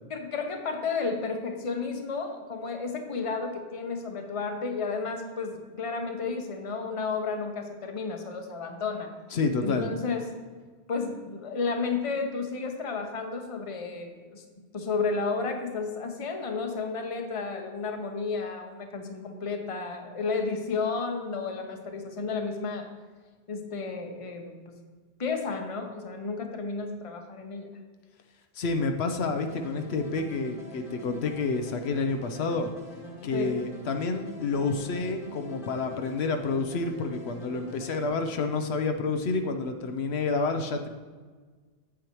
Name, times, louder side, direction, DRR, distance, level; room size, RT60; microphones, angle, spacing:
voice 1, 0.1-9.1 9.6-10.3 10.9-14.4 14.7-22.9 23.5-24.8 25.2-27.7 33.3-33.5, left 4 dB, 35° left, 4 dB, 0.8 m, -32 dB
voice 2, 9.3-9.9 28.5-32.7 33.2-40.9, left 3 dB, 80° left, 6 dB, 0.9 m, -29 dB
sound 1, 29.4-38.1, left 3 dB, 55° left, 1.5 m, -44 dB
8.3 x 7.7 x 3.0 m, 1.5 s
omnidirectional pair, 1.1 m